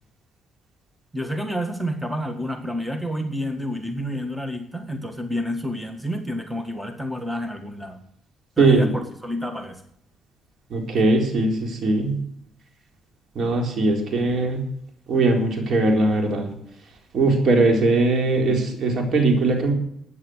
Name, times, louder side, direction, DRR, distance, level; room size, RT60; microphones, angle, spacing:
voice 1, 1.1-8.0 8.6-9.8, equal, 5° right, 6 dB, 1.7 m, -29 dB
voice 2, 8.6-8.9 10.7-12.2 13.3-14.6 15.1-16.5 17.1-19.7, right 2 dB, 60° right, 3 dB, 4.1 m, -20 dB
14.0 x 9.5 x 6.4 m, 0.71 s
cardioid pair, 90°, 0 cm